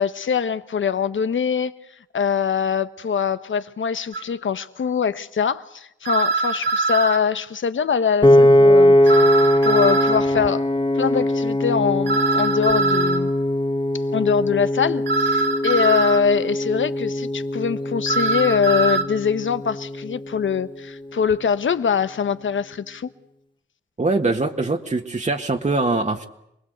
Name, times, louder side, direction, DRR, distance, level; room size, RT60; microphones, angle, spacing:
voice 1, 0.0-1.7 2.1-9.2 9.6-10.6 10.9-13.3 14.1-23.1, left 6 dB, 80° left, 1.0 m, -23 dB
sound 1, 4.1-4.2 6.1-7.2 9.1-10.2 12.1-13.2 15.1-16.2 18.1-19.0, right 3 dB, 60° right, 2.2 m, -22 dB
Piano, 8.2-20.5, left 1 dB, 25° left, 1.4 m, -20 dB
voice 2, 24.0-26.2, right 3 dB, 35° right, 1.5 m, -22 dB
26.5 x 20.0 x 8.0 m
wide cardioid pair, 80°, 20 cm